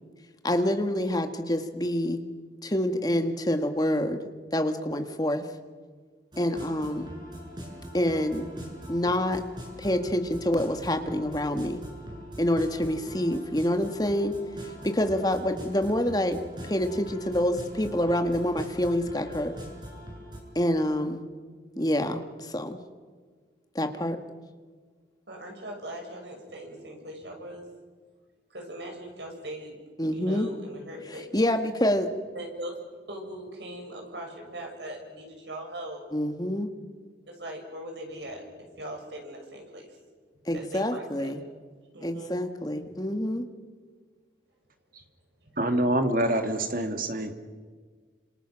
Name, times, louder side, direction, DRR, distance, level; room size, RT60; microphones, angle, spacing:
voice 1, 0.4-2.2 2.6-4.2 4.5-5.4 6.4-7.1 7.9-8.5 8.9-9.4 9.8-11.8 12.4-14.3 14.8-16.4 16.6-19.5 20.6-21.3 21.8-22.8 23.8-24.2 30.0-30.5 31.3-32.1 36.1-36.7 40.5-41.4 42.0-43.5, left 1 dB, 20° left, 6 dB, 1.8 m, -27 dB
sound 1, 6.3-20.4, equal, 25° right, 7.2 m, -42 dB
voice 2, 25.3-27.7 28.5-29.8 30.1-31.3 32.3-36.0 37.3-40.0 40.5-41.3 41.9-42.4, right 1 dB, 70° right, 2 dB, 7.0 m, -40 dB
voice 3, 45.6-47.3, right 1 dB, 50° right, 6 dB, 2.4 m, -26 dB
29.5 x 27.0 x 6.4 m, 1.5 s
head